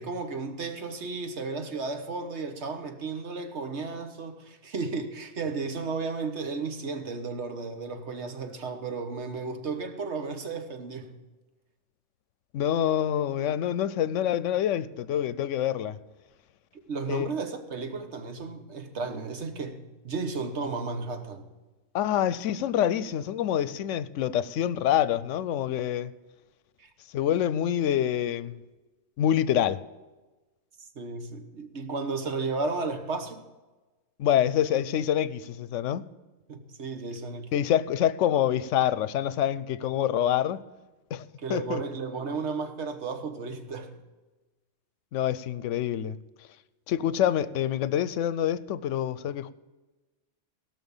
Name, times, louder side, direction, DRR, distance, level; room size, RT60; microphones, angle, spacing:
voice 1, 0.0-11.2 16.9-21.5 26.8-26.9 30.8-33.5 36.5-37.5 41.4-44.0, right 4 dB, 65° right, 1.5 m, -34 dB
voice 2, 12.5-16.0 17.1-17.3 21.9-26.1 27.1-28.6 29.2-29.8 34.2-36.0 37.5-40.6 41.1-41.8 45.1-46.1 46.9-49.5, left 10 dB, 90° left, 0.9 m, -26 dB
17.0 x 6.1 x 7.2 m
omnidirectional pair, 1.2 m